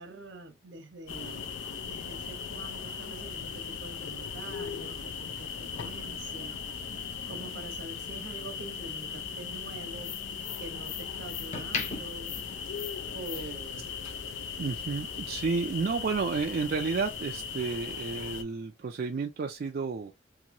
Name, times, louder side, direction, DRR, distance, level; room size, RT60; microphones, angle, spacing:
voice 1, 0.0-6.6 7.3-10.1 10.6-12.4 13.1-13.9, right 2 dB, 75° right, 0.8 m, -45 dB
sound 1, 1.1-18.4, left 6 dB, 80° left, 0.5 m, -38 dB
sound 2, 11.5-13.4 13.7-14.0, left 4 dB, 40° left, 0.6 m, -40 dB
voice 2, 14.6-20.1, right 4 dB, 50° right, 0.3 m, -31 dB
2.9 x 2.6 x 2.5 m
head